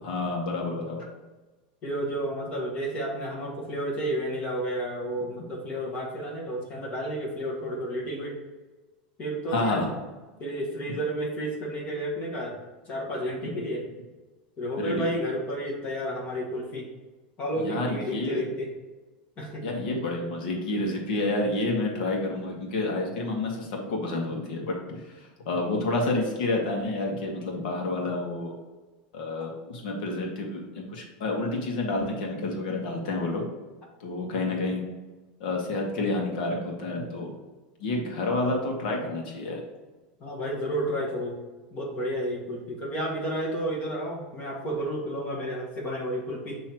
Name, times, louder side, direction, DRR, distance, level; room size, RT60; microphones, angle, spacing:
voice 1, 0.0-1.0 9.5-9.9 13.4-13.5 14.8-15.1 17.6-18.4 19.6-25.0 25.4-28.5 29.1-33.4 34.0-34.8 35.4-37.3 37.8-39.6, left 2 dB, 70° left, 0 dB, 1.5 m, -29 dB
voice 2, 1.8-8.4 9.2-9.8 10.4-13.8 14.6-16.9 17.4-18.7 19.4-19.6 29.4-29.5 40.2-41.4 41.7-46.6, equal, 25° left, -2 dB, 1.7 m, -31 dB
7.7 x 3.1 x 4.5 m, 1.2 s
supercardioid pair, 165°, 5 cm